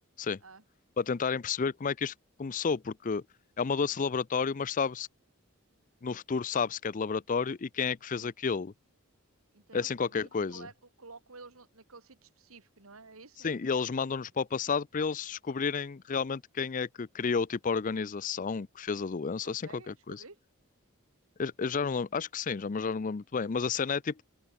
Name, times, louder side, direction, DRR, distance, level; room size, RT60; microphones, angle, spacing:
voice 1, 1.0-2.1 2.4-3.2 3.6-5.1 6.0-8.7 9.7-10.7 13.4-20.2 21.4-24.2, left 5 dB, 40° left, 0.5 m, -31 dB
voice 2, 9.5-13.5 19.4-20.4, right 3 dB, 80° right, 2.6 m, -52 dB
open air
head